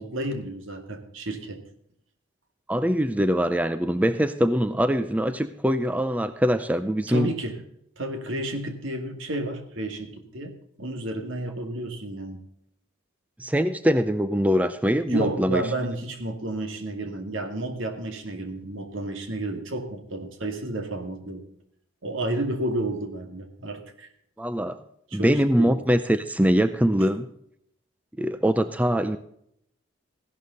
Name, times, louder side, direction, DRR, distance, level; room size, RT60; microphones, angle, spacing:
voice 1, 0.0-1.6 7.1-7.6 8.0-12.4 15.1-21.4 22.0-24.1 25.1-25.8 27.0-27.1, right 1 dB, 75° right, 5 dB, 2.2 m, -31 dB
voice 2, 2.7-7.3 13.4-15.6 24.4-24.8 25.1-27.2 28.2-29.2, equal, 5° right, 11 dB, 0.5 m, -23 dB
16.0 x 11.5 x 4.0 m, 0.71 s
head